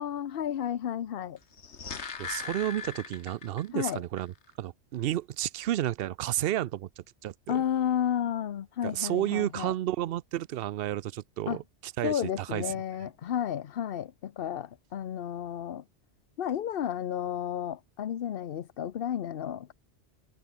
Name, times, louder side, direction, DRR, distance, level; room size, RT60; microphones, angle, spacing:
voice 1, 0.0-1.4 3.7-4.0 7.5-9.7 11.5-11.6 12.0-15.8 16.4-19.7, left 9 dB, 60° left, 0.9 m, -32 dB
sound 1, 1.4-3.9 4.2-4.3, left 6 dB, 80° left, 1.8 m, -39 dB
voice 2, 2.2-7.6 8.8-12.7, right 13 dB, 65° right, 0.7 m, -32 dB
omnidirectional pair, 1.2 m